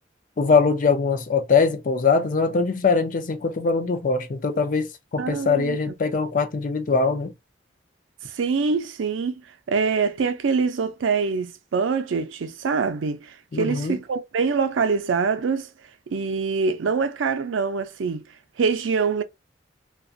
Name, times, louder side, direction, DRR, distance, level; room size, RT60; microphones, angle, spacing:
voice 1, 0.4-7.3 13.5-14.0, left 4 dB, 45° left, 0.4 m, -22 dB
voice 2, 5.2-5.9 8.3-9.4 9.7-15.7 16.1-18.2 18.6-19.2, right 5 dB, 90° right, 0.4 m, -24 dB
2.6 x 2.2 x 2.3 m
head